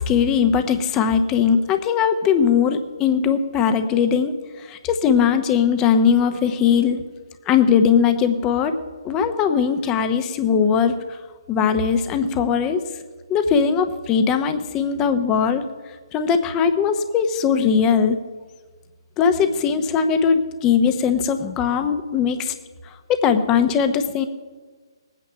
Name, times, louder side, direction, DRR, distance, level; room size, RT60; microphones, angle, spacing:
voice 1, 0.0-7.0 7.5-8.7 9.0-11.2 11.5-12.8 13.3-15.6 16.1-18.2 19.2-22.5 23.1-24.3, left 7 dB, 20° left, 9 dB, 0.9 m, -20 dB
19.5 x 9.2 x 5.7 m, 1.4 s
figure-of-eight pair, 135°, 3 cm